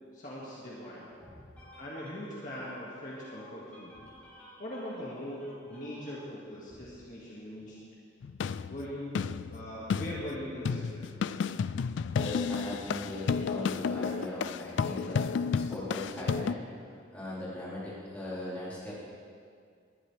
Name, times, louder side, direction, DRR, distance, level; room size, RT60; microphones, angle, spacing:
voice 1, 0.1-1.1 1.8-3.9 4.6-7.8 8.7-11.1, equal, 45° left, -6 dB, 2.0 m, -41 dB
voice 2, 1.2-2.1 2.5-2.8 3.1-4.6 5.7-6.1 12.2-15.3 15.7-16.6 17.1-18.9, left 1 dB, 5° left, -10 dB, 4.1 m, -40 dB
sound 1, 8.2-16.5, left 6 dB, 75° left, 0.3 m, -32 dB
20.0 x 12.0 x 3.4 m, 2.2 s
head